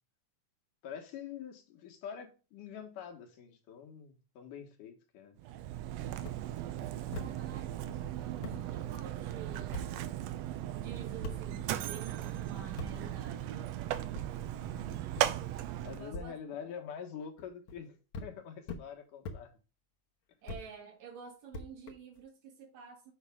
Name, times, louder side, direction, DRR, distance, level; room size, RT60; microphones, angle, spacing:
voice 1, 0.8-5.4 14.5-15.1 15.8-19.5, left 7 dB, 80° left, 2.9 m, -46 dB
Mechanisms, 5.4-16.1, right 12 dB, 80° right, 1.5 m, -37 dB
sound 1, 6.2-6.4 7.1-7.3 8.1-8.2 8.4-8.6 9.7-9.9 11.2-11.4 12.8-12.9 14.1-14.3 15.1-15.3 16.1-16.3 17.4-17.8 18.1-18.3 18.7-18.8 19.2-19.4 20.5-20.6 21.5-22.2, left 2 dB, 65° left, 1.3 m, -41 dB
voice 2, 7.1-10.0 10.8-13.7 16.0-16.3 20.4-23.1, right 5 dB, 65° right, 3.1 m, -49 dB
8.1 x 5.6 x 3.4 m
omnidirectional pair, 3.6 m